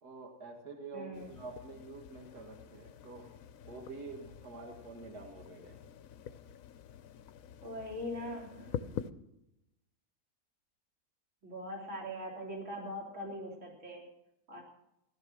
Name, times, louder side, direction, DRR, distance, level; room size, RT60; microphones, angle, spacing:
voice 1, 0.0-3.3 3.7-5.8, right 3 dB, 90° right, 2 dB, 2.2 m, -47 dB
voice 2, 0.9-1.3 7.6-9.0 11.4-14.1 14.5-14.6, equal, 50° right, -1 dB, 3.8 m, -41 dB
sound 1, 1.1-9.1, left 9 dB, 65° left, 1.0 m, -46 dB
16.5 x 12.0 x 6.2 m, 0.87 s
omnidirectional pair, 1.6 m